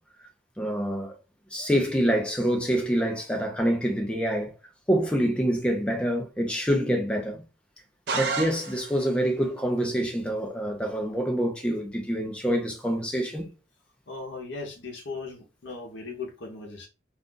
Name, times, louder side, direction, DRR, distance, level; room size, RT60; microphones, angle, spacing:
voice 1, 0.6-1.2 1.5-4.5 4.9-7.4 8.1-13.5, equal, 5° left, 0.6 m, -26 dB
sound 1, 8.1-9.2, right 4 dB, 55° right, 0.6 m, -31 dB
voice 2, 14.1-16.9, left 3 dB, 65° left, 0.8 m, -38 dB
2.5 x 2.3 x 3.7 m
head